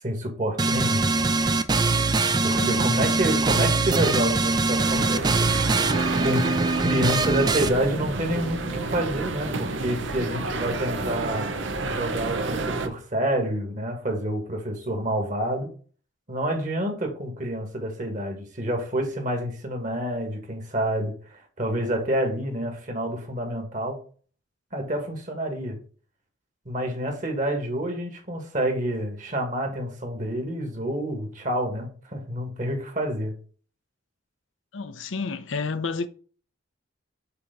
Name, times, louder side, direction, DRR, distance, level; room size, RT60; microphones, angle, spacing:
voice 1, 0.0-1.3 2.4-5.7 6.2-6.4 6.8-11.5 11.8-15.7 16.3-24.0 24.7-25.8 26.6-33.3, right 1 dB, 40° right, 1.7 m, -28 dB
sound 1, 0.6-7.7, right 3 dB, 20° right, 0.4 m, -23 dB
voice 2, 2.5-3.0 34.7-36.1, left 4 dB, 80° left, 0.7 m, -30 dB
sound 2, 4.8-12.9, right 3 dB, 70° right, 0.8 m, -30 dB
6.7 x 3.0 x 5.2 m
head